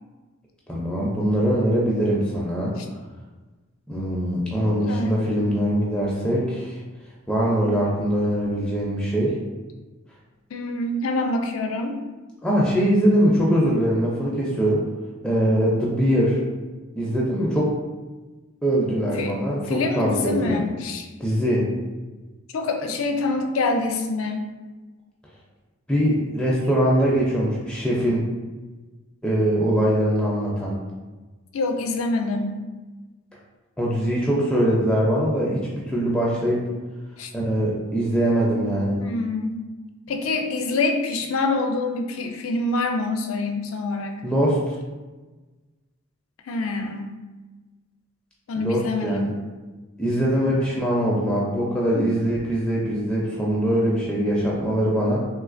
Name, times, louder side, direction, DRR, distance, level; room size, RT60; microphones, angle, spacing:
voice 1, 0.7-2.7 3.9-6.8 7.3-9.3 12.4-14.8 15.2-16.4 16.9-17.7 18.6-20.6 21.2-21.6 25.9-28.3 29.2-30.8 33.8-35.6 35.9-36.6 37.3-39.0 44.2-44.8 48.6-49.3 50.0-55.2, equal, 5° left, -5 dB, 0.4 m, -22 dB
voice 2, 4.8-5.2 10.5-12.0 19.2-19.4 19.7-21.1 22.5-24.4 31.5-32.6 37.2-37.3 39.0-39.6 40.1-44.2 46.5-47.1 48.5-49.3, left 3 dB, 85° left, 5 dB, 0.4 m, -26 dB
3.1 x 3.1 x 2.4 m, 1.2 s
head